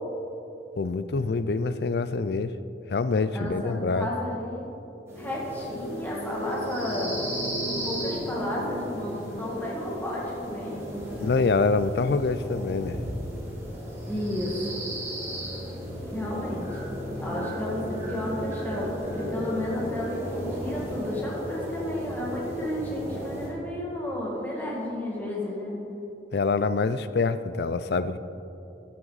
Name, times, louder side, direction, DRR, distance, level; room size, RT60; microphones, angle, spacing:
voice 1, 0.8-2.5 2.9-4.1 11.2-13.0 26.3-28.2, left 4 dB, 60° left, 13 dB, 0.4 m, -25 dB
voice 2, 3.3-4.7 5.2-7.2 7.7-11.0 14.1-14.7 16.1-16.8 17.2-25.8, left 1 dB, 10° left, -5 dB, 2.1 m, -32 dB
sound 1, 5.1-23.5, equal, 15° right, 2.2 m, -34 dB
14.0 x 8.8 x 4.1 m, 2.9 s
head